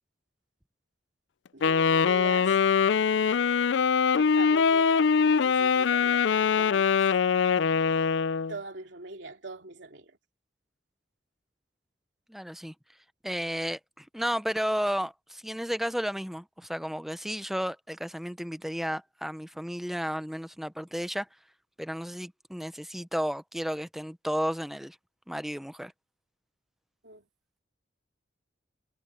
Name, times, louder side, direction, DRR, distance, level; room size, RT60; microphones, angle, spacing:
voice 1, 1.5-2.8 4.1-7.2 8.2-10.2 27.0-27.3, right 2 dB, 65° right, 2.9 m, -42 dB
Wind instrument woodwind instrument, 1.6-8.6, left 6 dB, 70° left, 0.4 m, -23 dB
voice 2, 12.3-12.7 13.2-21.3 21.8-25.0 25.3-25.9, equal, ahead, 0.7 m, -33 dB
head